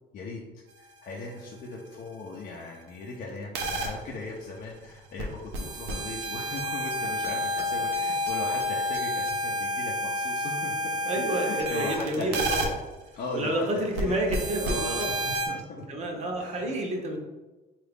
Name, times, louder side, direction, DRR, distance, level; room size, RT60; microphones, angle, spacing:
voice 1, 0.8-10.7 11.3-12.7 13.1-15.8 16.4-16.7, left 3 dB, 50° left, -2 dB, 0.6 m, -38 dB
sound 1, 3.5-3.9 5.2-5.3 5.5-12.7 14.0-14.1 14.3-15.5, equal, 85° right, 0.7 m, -29 dB
voice 2, 11.1-12.7 13.3-15.1 15.9-17.2, right 1 dB, 40° right, 1 dB, 0.8 m, -29 dB
3.7 x 2.4 x 3.4 m, 1.1 s
cardioid pair, 110°, 17 cm